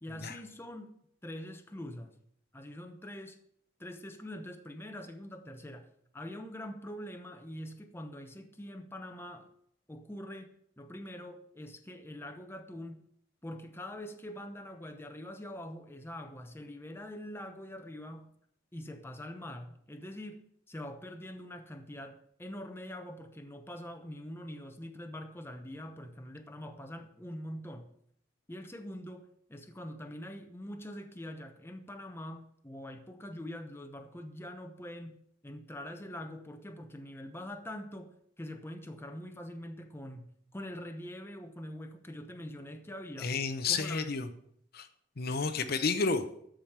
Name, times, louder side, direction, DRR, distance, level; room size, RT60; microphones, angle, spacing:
voice 1, 0.0-0.9 1.2-2.2 2.5-3.4 3.8-5.9 6.1-9.5 9.9-13.0 13.4-18.3 18.7-27.9 28.5-38.1 38.4-43.4 43.7-44.1, left 1 dB, 10° left, 6 dB, 0.9 m, -44 dB
voice 2, 43.2-44.3 44.7-44.9 45.2-46.2, left 4 dB, 55° left, 9 dB, 0.8 m, -31 dB
13.5 x 5.1 x 7.2 m, 0.68 s
head